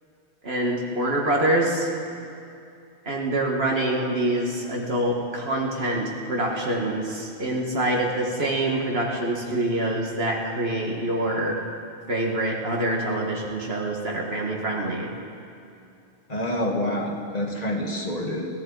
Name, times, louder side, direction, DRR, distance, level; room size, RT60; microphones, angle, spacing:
voice 1, 0.4-1.9 3.1-11.6 12.1-15.1, right 1 dB, 65° right, -1 dB, 1.9 m, -25 dB
voice 2, 16.3-18.5, left 1 dB, 40° left, 0 dB, 1.7 m, -27 dB
22.0 x 15.5 x 3.9 m, 2.6 s
omnidirectional pair, 1.1 m